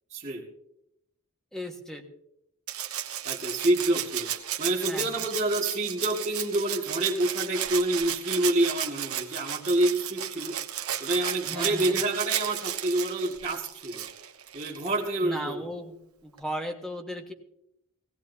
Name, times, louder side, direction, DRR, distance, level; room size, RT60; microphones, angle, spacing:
voice 1, 0.1-0.4 3.2-4.3 4.6-10.5 11.0-14.0 14.5-15.7, right 1 dB, 30° right, -7 dB, 2.0 m, -27 dB
voice 2, 1.5-2.0 4.9-5.2 11.5-12.0 15.2-15.9 16.2-17.3, equal, ahead, 3 dB, 1.5 m, -36 dB
Rattle (instrument), 2.7-15.0 16.4-16.5, right 11 dB, 80° right, 1.2 m, -34 dB
19.5 x 16.0 x 2.7 m, 0.78 s
head